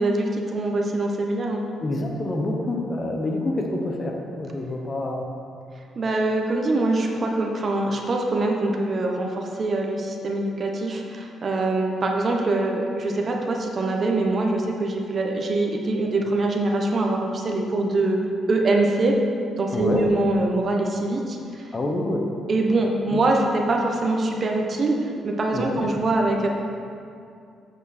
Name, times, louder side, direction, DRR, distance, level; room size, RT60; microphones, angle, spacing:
voice 1, 0.0-1.6 6.0-18.2 18.5-19.2 19.6-21.7 22.5-26.5, right 2 dB, 45° right, 1 dB, 1.1 m, -23 dB
voice 2, 1.8-5.3 19.7-20.0 21.7-22.2 23.1-23.2 25.5-25.9, left 2 dB, 35° left, 1 dB, 1.2 m, -27 dB
8.1 x 7.1 x 4.4 m, 2.4 s
cardioid pair, 90°, 0 cm